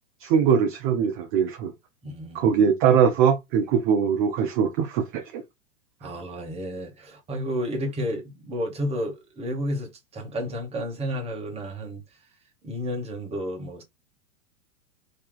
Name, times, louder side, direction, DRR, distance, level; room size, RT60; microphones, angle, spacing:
voice 1, 0.2-1.7 2.3-5.2, right 7 dB, 35° right, 0.6 m, -21 dB
voice 2, 2.0-2.4 6.0-12.0 12.6-13.8, equal, 15° right, 1.0 m, -31 dB
3.2 x 2.8 x 3.7 m
hypercardioid pair, 135°, 45 cm